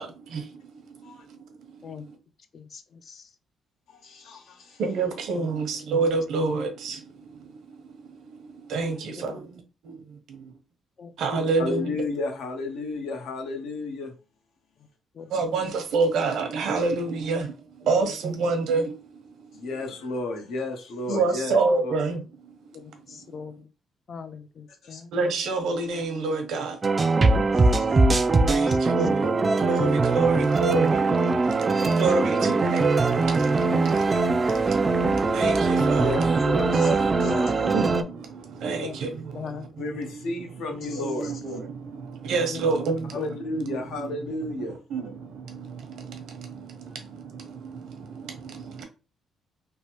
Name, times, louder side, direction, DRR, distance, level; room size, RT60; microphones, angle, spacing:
voice 1, 0.0-2.0 4.8-8.1 8.4-10.4 11.2-11.9 15.3-19.6 21.1-22.2 25.1-26.8 28.5-29.3 29.6-34.0 34.5-36.1 36.7-37.1 37.5-39.8 40.1-40.2 40.9-43.2 43.5-44.1 44.6-48.8, right 3 dB, 80° right, 0.8 m, -29 dB
voice 2, 2.5-3.2 5.3-5.5 9.2-9.4 11.0-11.4 15.2-15.3 17.9-18.1 22.7-23.7 24.1-25.1 27.9-28.0 28.5-28.8 33.1-33.2 37.5-37.6 38.8-39.0 39.3-39.6 42.5-42.7 43.1-43.3, left 7 dB, 50° left, 0.4 m, -40 dB
voice 3, 3.9-4.8 8.9-9.0 11.6-14.1 19.5-21.5 21.8-21.9 24.8-25.0 27.5-28.0 36.0-37.7 39.8-41.4 43.1-45.0, left 2 dB, 80° left, 0.8 m, -32 dB
sound 1, 26.8-38.0, right 3 dB, 30° right, 0.4 m, -21 dB
3.2 x 2.1 x 2.9 m
cardioid pair, 90°, 0 cm